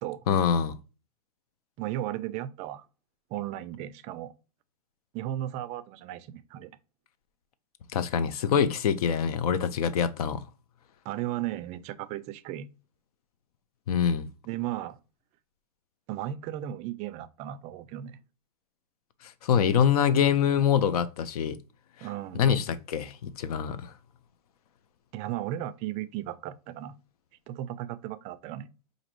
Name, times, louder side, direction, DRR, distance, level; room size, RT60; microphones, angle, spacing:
voice 1, 0.3-0.8 7.9-10.4 13.9-14.3 19.2-21.6 22.4-23.9, left 8 dB, 75° left, 0.6 m, -25 dB
voice 2, 1.8-2.8 3.3-4.3 5.1-6.7 11.0-12.7 14.4-15.0 16.1-18.2 22.0-22.5 25.1-27.0 27.5-28.7, right 13 dB, 35° right, 0.4 m, -35 dB
5.0 x 2.6 x 2.9 m
hypercardioid pair, 130°, 20 cm